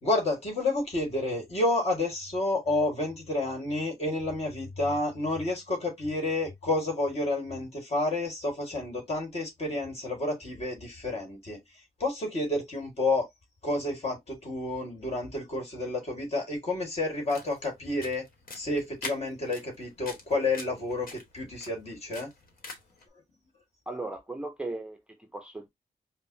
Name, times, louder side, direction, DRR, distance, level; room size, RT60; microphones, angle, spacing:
voice 1, 0.0-11.6 12.0-13.3 13.6-18.2 18.5-22.3, left 2 dB, 45° left, 1.6 m, -30 dB
sound 1, 17.1-23.0, left 3 dB, 75° left, 1.1 m, -45 dB
voice 2, 23.9-25.7, right 2 dB, 5° right, 0.5 m, -37 dB
5.2 x 2.0 x 2.6 m
wide cardioid pair, 170°, 15 cm